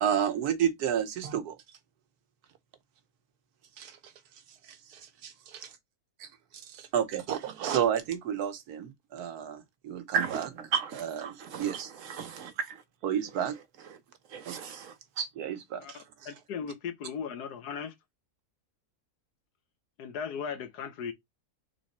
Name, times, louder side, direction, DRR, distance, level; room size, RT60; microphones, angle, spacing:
voice 1, 0.0-1.6 3.8-4.0 4.7-5.7 6.2-6.3 6.5-10.5 11.0-11.9 13.0-13.5 14.5-14.6 15.4-16.0, right 9 dB, 80° right, 1.3 m, -31 dB
voice 2, 10.1-12.8 13.9-14.0 14.3-15.3, right 6 dB, 60° right, 1.1 m, -34 dB
voice 3, 15.8-17.9 20.0-21.1, left 6 dB, 90° left, 1.4 m, -37 dB
3.9 x 3.2 x 4.1 m
omnidirectional pair, 1.6 m